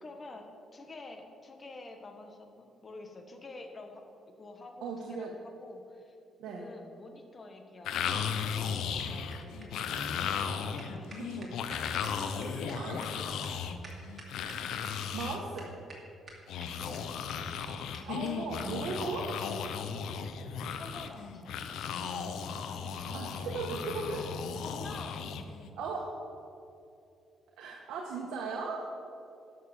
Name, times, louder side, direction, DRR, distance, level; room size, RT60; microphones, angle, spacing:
voice 1, 0.0-6.2 6.5-9.8 10.6-11.5 12.0-13.6 16.8-17.0 20.8-23.3 24.6-25.2, left 2 dB, 35° left, 5 dB, 1.5 m, -49 dB
voice 2, 4.8-5.3 6.4-6.7 11.1-11.5 12.5-13.0 15.1-15.7 18.1-19.3 23.1-24.3 25.8-26.1 27.6-28.9, right 4 dB, 80° right, 0 dB, 1.3 m, -37 dB
sound 1, 7.8-15.4 16.5-25.7, left 7 dB, 80° left, 0.7 m, -36 dB
sound 2, 8.4-14.9 15.2-15.3 15.6-16.0 16.3-17.0 17.3-17.4 17.6-17.7 17.9-18.0 18.3-18.4 18.6-18.7 18.9-19.0 19.3-19.4 19.6-19.7 20.6-20.7, right 2 dB, 35° right, 2.6 m, -50 dB
11.5 x 6.6 x 7.0 m, 2.6 s
cardioid pair, 90°, 0 cm